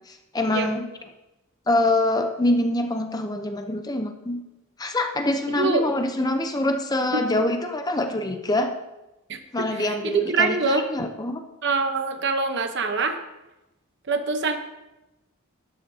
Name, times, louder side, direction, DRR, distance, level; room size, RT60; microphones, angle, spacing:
voice 1, 0.1-0.9 1.7-4.4 4.8-8.7 9.5-11.4, left 1 dB, 15° left, 6 dB, 0.6 m, -25 dB
voice 2, 9.3-10.9 11.6-13.2 14.1-14.6, right 4 dB, 50° right, 7 dB, 0.9 m, -24 dB
12.5 x 11.0 x 2.7 m, 0.99 s
head